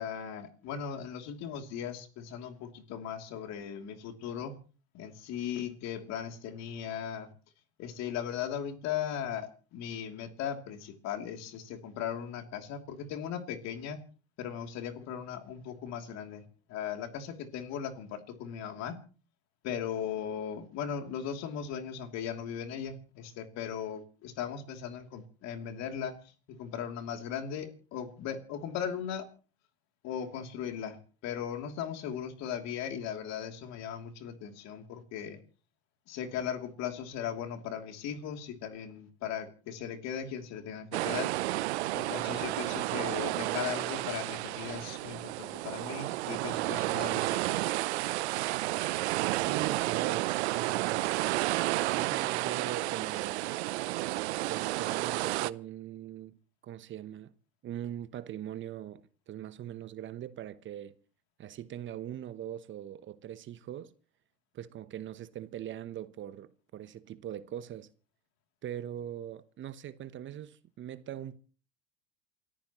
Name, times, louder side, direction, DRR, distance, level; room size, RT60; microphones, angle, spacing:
voice 1, 0.0-4.5 4.9-7.3 7.8-14.0 14.4-16.4 16.7-19.0 19.6-26.2 26.5-29.3 30.0-31.0 31.2-35.4 36.1-41.3 41.9-47.6, left 8 dB, 55° left, 3.0 m, -38 dB
sound 1, 40.9-55.5, right 18 dB, 75° right, 0.7 m, -31 dB
voice 2, 49.3-51.2 51.9-53.4 54.5-56.4 56.6-57.3 57.6-59.0 59.3-60.9 61.4-63.9 64.5-67.9 68.6-71.4, right 11 dB, 35° right, 1.0 m, -41 dB
28.5 x 14.0 x 3.1 m
hypercardioid pair, 100°, 33 cm